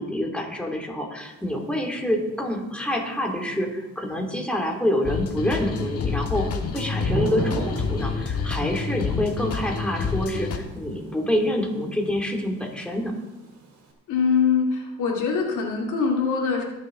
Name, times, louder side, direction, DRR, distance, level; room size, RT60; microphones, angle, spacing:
voice 1, 0.0-6.5 6.7-13.1, left 1 dB, 5° left, 0 dB, 2.7 m, -27 dB
Thunder / Rain, 1.2-13.9, right 2 dB, 80° right, 3.6 m, -38 dB
sound 1, 5.1-10.6, left 5 dB, 50° left, 1.7 m, -28 dB
voice 2, 14.1-16.6, left 5 dB, 80° left, 0 dB, 2.5 m, -23 dB
21.5 x 7.4 x 3.9 m, 1.0 s
cardioid pair, 90°, 30 cm